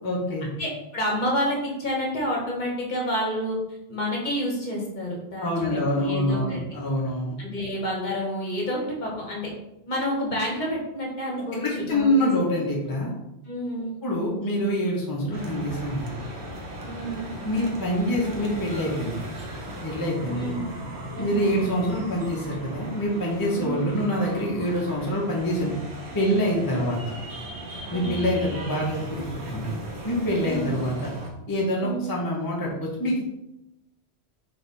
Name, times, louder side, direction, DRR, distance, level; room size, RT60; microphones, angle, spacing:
voice 1, 0.0-0.5 5.4-7.4 11.6-13.1 14.0-16.2 17.4-19.2 19.8-20.6 21.2-25.7 26.1-27.0 27.9-29.2 29.5-29.7 30.0-31.1 31.5-33.2, equal, 25° left, -3 dB, 0.7 m, -25 dB
voice 2, 0.6-3.6 3.9-6.6 7.4-9.5 9.9-12.3 13.5-14.0 16.8-17.3 20.3-20.6 21.2-21.5 23.6-23.8 27.9-28.3 30.4-30.7 31.8-32.1, equal, 45° left, -2 dB, 1.1 m, -29 dB
sound 1, 15.3-31.3, right 1 dB, 80° right, 1.1 m, -37 dB
3.3 x 3.3 x 4.1 m, 0.89 s
omnidirectional pair, 1.1 m